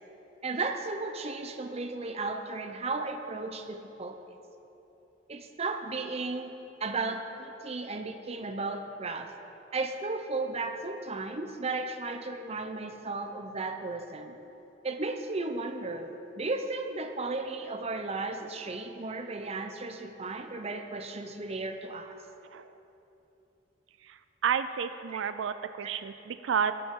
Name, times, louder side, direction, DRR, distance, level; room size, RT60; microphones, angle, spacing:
voice 1, 0.4-4.2 5.3-6.5 6.8-9.3 9.7-14.4 14.8-22.2 25.1-25.2 25.8-25.9, right 3 dB, 35° right, 6 dB, 0.7 m, -35 dB
voice 2, 24.4-26.7, right 7 dB, 90° right, 11 dB, 0.4 m, -30 dB
18.5 x 6.9 x 3.7 m, 3.0 s
head